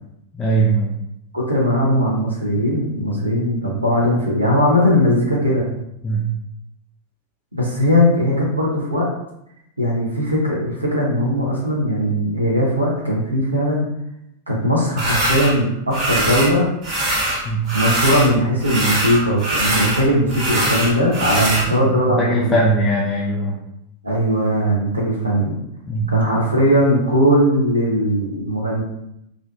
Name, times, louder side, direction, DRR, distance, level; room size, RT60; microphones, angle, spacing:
voice 1, 0.3-0.9 3.1-3.3 6.0-6.3 17.4-17.7 21.4-23.6 25.9-26.1, right 2 dB, 20° left, -4 dB, 0.4 m, -20 dB
voice 2, 1.3-5.7 7.5-9.1 9.8-13.9 14.5-16.7 17.7-22.6 24.0-25.6 26.1-28.8, equal, 85° right, -4 dB, 0.5 m, -19 dB
sound 1, 15.0-15.5 15.9-16.5 16.8-18.3 18.6-21.7, right 1 dB, 35° right, 0.7 m, -22 dB
2.4 x 2.1 x 2.4 m, 0.80 s
figure-of-eight pair, 90°, 0 cm